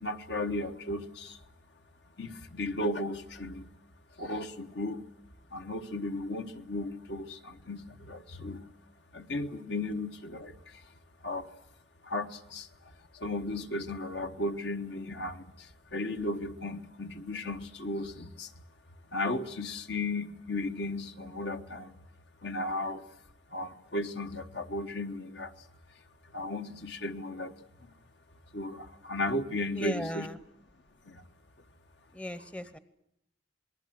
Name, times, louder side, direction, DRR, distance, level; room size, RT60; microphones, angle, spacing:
voice 1, 0.0-1.4 2.2-3.7 4.2-5.0 5.5-8.6 9.1-10.8 11.2-11.5 12.0-12.7 13.1-18.5 19.1-21.9 22.4-23.0 23.5-25.5 26.3-27.5 27.8-27.9 28.5-30.3 31.0-31.2, left 2 dB, 60° left, 7 dB, 1.3 m, -35 dB
voice 2, 29.7-30.4 32.1-32.8, equal, 5° left, 12 dB, 0.9 m, -37 dB
28.0 x 20.0 x 7.8 m, 0.77 s
head